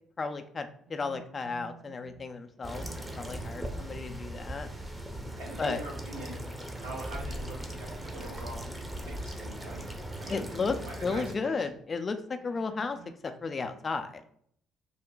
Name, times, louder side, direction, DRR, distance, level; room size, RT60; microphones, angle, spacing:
voice 1, 0.2-2.9 3.2-4.7 5.6-5.8 10.3-10.8 11.0-13.0 13.2-14.2, left 4 dB, 40° left, 8 dB, 0.4 m, -33 dB
sound 1, 0.8-5.7 6.0-7.6 7.9-8.1 8.4-11.9 12.3-13.1, right 6 dB, 65° right, 0.8 m, -57 dB
sound 2, 2.6-11.3, right 1 dB, 15° right, 0.7 m, -39 dB
voice 2, 5.4-6.4 6.8-8.7 9.0-9.9 10.2-11.7, right 1 dB, 90° right, -5 dB, 1.0 m, -44 dB
3.3 x 2.1 x 3.8 m, 0.63 s
hypercardioid pair, 50°, 0 cm